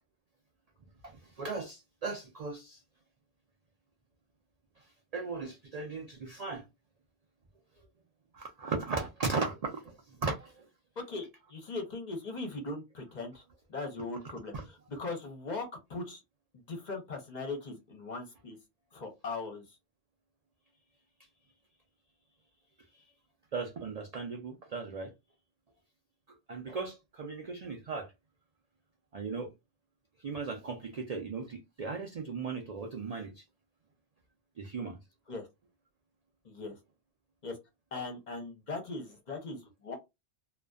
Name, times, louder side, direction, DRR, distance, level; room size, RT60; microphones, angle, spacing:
voice 1, 1.0-2.8 4.8-4.9 5.1-6.7 8.3-10.7 14.5-14.6 22.9-23.0 23.5-25.1 26.3-28.1 29.1-29.5 30.2-33.4 34.6-35.0 37.9-38.0, right 4 dB, 75° right, 0.3 m, -37 dB
voice 2, 11.0-13.4 13.7-16.2 16.5-18.6 18.9-19.8 35.3-35.5 36.4-36.8 37.4-37.6 37.9-40.0, left 3 dB, 45° left, 0.7 m, -39 dB
2.5 x 2.2 x 2.3 m
omnidirectional pair, 1.2 m